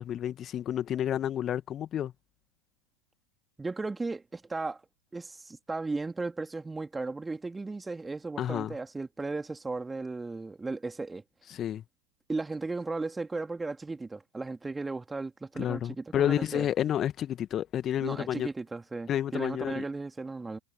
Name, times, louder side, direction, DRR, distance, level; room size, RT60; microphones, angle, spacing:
voice 1, 0.0-2.1 8.4-8.7 11.5-11.8 15.6-18.5 19.1-19.8, left 10 dB, 30° left, 2.1 m, -30 dB
voice 2, 3.6-4.8 5.1-11.2 12.3-16.7 18.0-20.6, right 3 dB, 10° right, 2.8 m, -35 dB
figure-of-eight pair, 90°, 0 cm